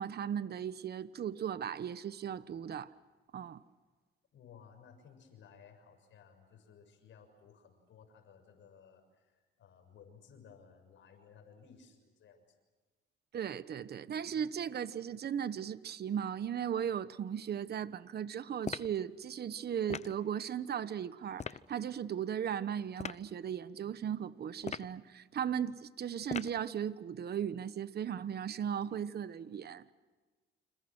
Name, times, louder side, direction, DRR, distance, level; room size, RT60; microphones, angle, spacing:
voice 1, 0.0-2.9 3.3-3.6 13.3-29.9, right 8 dB, 55° right, 14 dB, 1.2 m, -37 dB
voice 2, 4.3-12.4, left 6 dB, 70° left, 6 dB, 6.6 m, -58 dB
sound 1, 18.6-19.0 19.9-20.2 21.4-21.6 23.0-23.2 24.6-25.0 26.3-26.6, left 6 dB, 35° left, 0.8 m, -40 dB
30.0 x 27.5 x 6.2 m, 1.3 s
cardioid pair, 90°, 20 cm